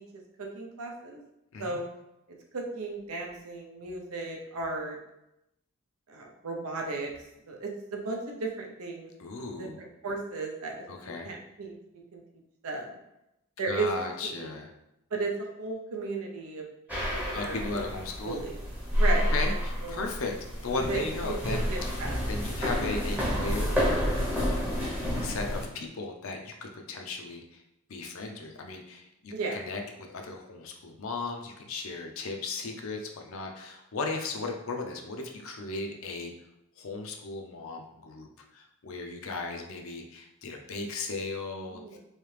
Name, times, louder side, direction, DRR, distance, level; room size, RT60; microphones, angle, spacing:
voice 1, 0.4-1.2 1.6-1.8 2.5-5.0 6.1-7.1 7.5-9.1 9.6-10.8 11.0-11.8 12.1-12.2 12.6-12.9 13.6-13.9 14.2-14.5 15.1-15.3 15.6-16.6 16.9-17.8 18.2-18.6 18.9-20.0 20.9-22.2 29.3-29.6 41.7-42.0, right 3 dB, 80° right, 1 dB, 0.6 m, -35 dB
voice 2, 9.2-9.8 10.9-11.3 13.7-14.7 17.3-18.4 19.3-20.4 20.6-22.0 22.3-24.7 25.2-27.6 27.9-29.8 30.1-36.3 36.8-42.0, left 3 dB, 70° left, 3 dB, 0.5 m, -36 dB
sound 1, 16.9-25.7, equal, 5° right, 0.7 m, -29 dB
3.2 x 2.8 x 3.2 m, 0.88 s
head